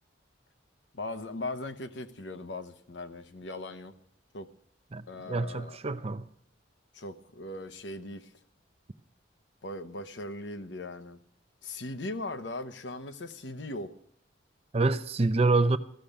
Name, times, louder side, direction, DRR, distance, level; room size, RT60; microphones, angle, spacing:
voice 1, 0.9-3.9 4.3-4.5 5.1-5.8 6.9-8.3 9.6-11.2 11.6-13.9, left 2 dB, 65° left, 0.9 m, -39 dB
voice 2, 4.9-6.2 14.7-15.8, right 3 dB, 30° right, 0.5 m, -26 dB
14.5 x 6.7 x 8.7 m
head